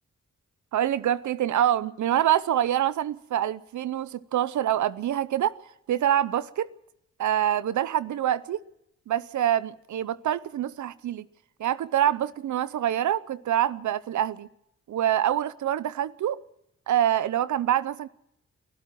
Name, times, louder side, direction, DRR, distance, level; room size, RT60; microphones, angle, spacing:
voice 1, 0.7-5.6 5.9-6.7 7.2-8.6 9.1-11.3 11.6-14.5 14.9-16.4 16.9-18.1, right 11 dB, 85° right, 0.7 m, -25 dB
24.0 x 12.5 x 9.1 m
cardioid pair, 55°, 29 cm